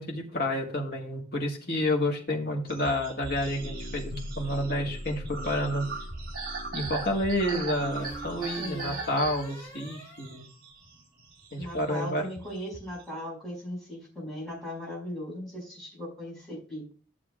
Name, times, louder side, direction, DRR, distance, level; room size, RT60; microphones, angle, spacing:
voice 1, 0.0-5.8 6.7-10.5 11.5-12.2, left 1 dB, 55° left, -1 dB, 1.6 m, -30 dB
sound 1, 2.7-13.1, right 3 dB, 50° right, 1.7 m, -40 dB
sound 2, 3.3-8.8, equal, 70° left, 1.3 m, -41 dB
sound 3, 4.8-5.6 7.5-11.1, right 1 dB, 20° left, 4.2 m, -46 dB
voice 2, 8.6-9.0 11.6-16.9, equal, ahead, -5 dB, 5.3 m, -38 dB
12.5 x 7.3 x 2.4 m, 0.39 s
head